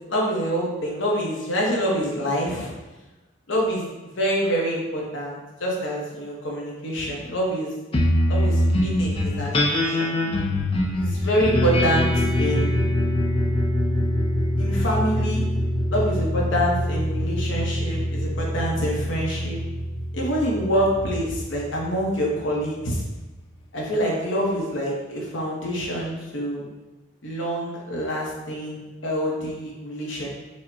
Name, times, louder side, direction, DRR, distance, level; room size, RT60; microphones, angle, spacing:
voice 1, 0.1-2.7 3.5-3.8 4.2-7.7 8.3-10.1 11.0-12.7 14.6-15.4 15.9-19.6 20.1-23.0 23.7-26.7 27.2-30.3, equal, 75° left, -3 dB, 0.9 m, -26 dB
sound 1, 7.9-22.6, left 1 dB, 30° left, 0.5 m, -24 dB
4.9 x 2.2 x 2.7 m, 1.1 s
head